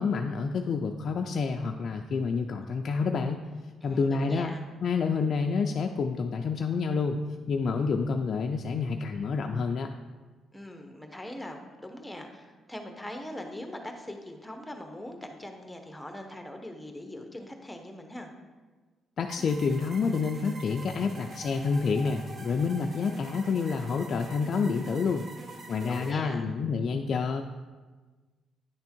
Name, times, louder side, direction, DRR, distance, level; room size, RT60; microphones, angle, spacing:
voice 1, 0.0-3.4 3.8-4.6 4.8-7.2 7.5-9.9 19.2-25.2 25.7-27.4, left 5 dB, 55° left, 4 dB, 0.3 m, -28 dB
voice 2, 3.8-4.6 10.5-18.3 25.8-26.4, left 1 dB, 5° left, 4 dB, 0.9 m, -41 dB
sound 1, 19.3-26.1, right 2 dB, 45° right, 0.8 m, -45 dB
9.7 x 3.5 x 4.4 m, 1.4 s
cardioid pair, 90°, 0 cm